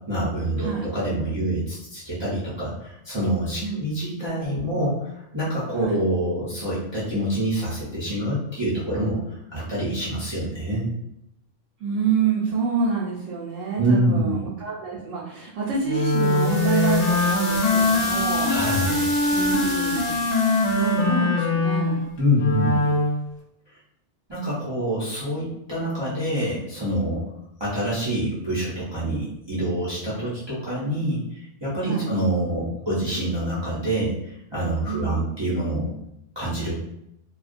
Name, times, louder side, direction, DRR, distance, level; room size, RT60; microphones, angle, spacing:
voice 1, 0.1-9.2 9.5-10.9 13.8-14.3 18.5-19.0 22.2-22.7 24.3-27.3 27.6-35.9 36.4-36.8, right 1 dB, 30° right, -10 dB, 0.6 m, -26 dB
voice 2, 3.6-3.9 5.8-6.0 11.8-18.5 19.3-20.2 20.5-22.0 31.9-32.1 34.9-35.2, right 5 dB, 80° right, -5 dB, 0.9 m, -27 dB
Wind instrument woodwind instrument, 15.9-23.2, left 2 dB, 70° left, 0.8 m, -22 dB
sound 1, 16.0-21.0, left 1 dB, 40° left, 0.7 m, -34 dB
2.3 x 2.1 x 2.5 m, 0.80 s
omnidirectional pair, 1.3 m